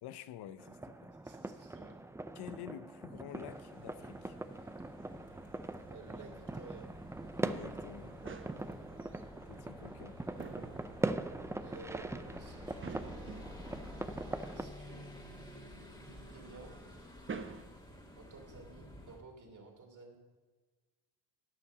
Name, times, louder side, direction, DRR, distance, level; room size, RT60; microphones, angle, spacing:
voice 1, 0.0-1.1 2.3-4.4 7.4-8.2 9.5-10.2, left 11 dB, 70° left, 0.7 m, -49 dB
sound 1, 0.6-14.6, right 2 dB, 5° right, 0.5 m, -42 dB
voice 2, 1.2-2.0 4.5-4.7 5.9-6.9 8.6-8.8 11.5-15.1 16.1-16.7 18.2-20.2, right 3 dB, 45° right, 3.0 m, -54 dB
sound 2, 3.3-17.6, right 5 dB, 30° right, 0.9 m, -52 dB
sound 3, 3.5-19.2, left 1 dB, 10° left, 2.2 m, -51 dB
12.5 x 5.8 x 6.8 m
cardioid pair, 85°, 42 cm